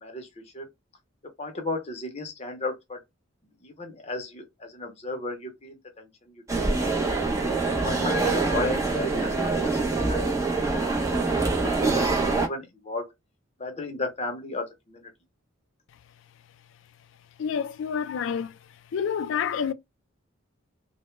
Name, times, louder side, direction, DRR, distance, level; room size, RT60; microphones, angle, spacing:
voice 1, 1.4-3.0 3.6-7.2 7.8-10.8 11.2-13.1 13.6-15.1, left 2 dB, 30° left, 0.6 m, -35 dB
sound 1, 6.5-12.5, right 3 dB, 15° right, 0.5 m, -25 dB
voice 2, 17.4-18.6 18.9-19.7, left 7 dB, 65° left, 0.3 m, -28 dB
2.1 x 2.0 x 3.0 m
head